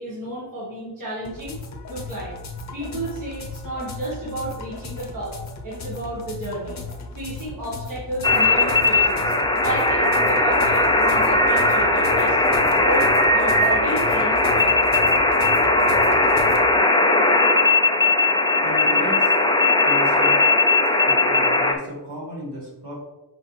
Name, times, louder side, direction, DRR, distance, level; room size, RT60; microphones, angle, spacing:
voice 1, 0.0-1.6 1.9-2.3 2.7-5.4 5.6-6.8 7.1-9.3 9.6-12.4 12.7-15.1, right 1 dB, 45° right, -7 dB, 1.7 m, -31 dB
sound 1, 1.2-16.6, left 3 dB, 40° left, 0.8 m, -36 dB
sound 2, 8.2-21.7, left 2 dB, 10° left, 0.4 m, -18 dB
voice 2, 18.6-19.3 19.8-20.4 21.1-23.0, equal, 65° right, -4 dB, 2.2 m, -34 dB
6.1 x 4.8 x 3.3 m, 1.0 s
wide cardioid pair, 155°, 43 cm